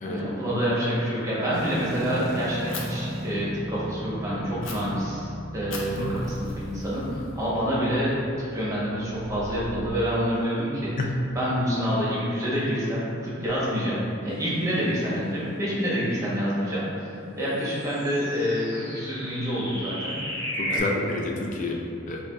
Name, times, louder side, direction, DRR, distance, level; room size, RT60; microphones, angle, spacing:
voice 1, 0.0-10.9 11.3-20.2 20.7-21.0, equal, 15° right, -7 dB, 0.9 m, -27 dB
sound 1, 1.5-9.9, equal, 70° right, 0.6 m, -37 dB
Fire, 2.7-2.8 4.6-4.7 5.7-7.7, left 4 dB, 90° left, 0.6 m, -40 dB
sound 2, 17.6-20.8, equal, 15° left, 1.2 m, -34 dB
voice 2, 20.6-22.2, left 2 dB, 40° left, 0 dB, 0.4 m, -30 dB
6.5 x 2.4 x 2.3 m, 2.6 s
head